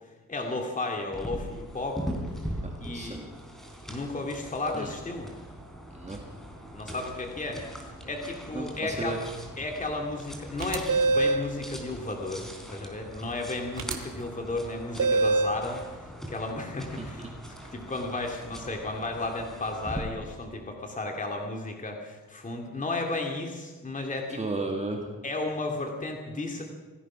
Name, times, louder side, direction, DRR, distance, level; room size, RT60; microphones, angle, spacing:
voice 1, 0.3-2.2 2.8-3.3 3.9-5.3 6.7-9.2 9.6-24.4 25.2-26.6, left 2 dB, 20° left, 2 dB, 2.4 m, -34 dB
sound 1, 1.1-20.0, equal, ahead, 3.7 m, -41 dB
voice 2, 2.9-3.2 4.8-4.9 5.9-6.2 8.5-9.2 17.0-17.3 24.4-25.1, right 2 dB, 20° right, 1 dB, 2.0 m, -34 dB
sound 2, 10.6-11.5 13.8-13.9 15.0-15.6, right 3 dB, 65° right, 1.8 m, -24 dB
26.5 x 17.0 x 6.1 m, 1.3 s
wide cardioid pair, 165°, 34 cm